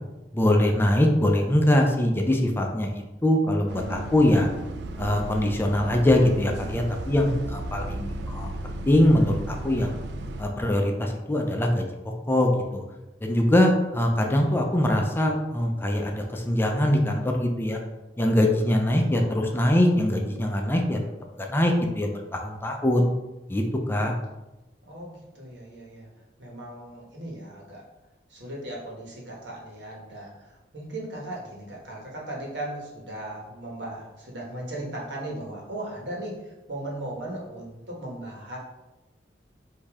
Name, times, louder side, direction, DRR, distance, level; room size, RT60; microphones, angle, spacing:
voice 1, 0.3-4.5 5.0-10.0 10.4-11.9 12.3-12.8 13.2-17.8 18.2-21.0 21.4-23.1 23.5-24.1, left 1 dB, 15° left, 2 dB, 0.5 m, -23 dB
Bus, 3.7-10.4, right 2 dB, 70° right, 0.4 m, -35 dB
voice 2, 24.9-26.1 26.4-27.8 28.3-38.6, right 1 dB, 90° right, -3 dB, 1.3 m, -37 dB
5.0 x 2.7 x 3.5 m, 1.0 s
head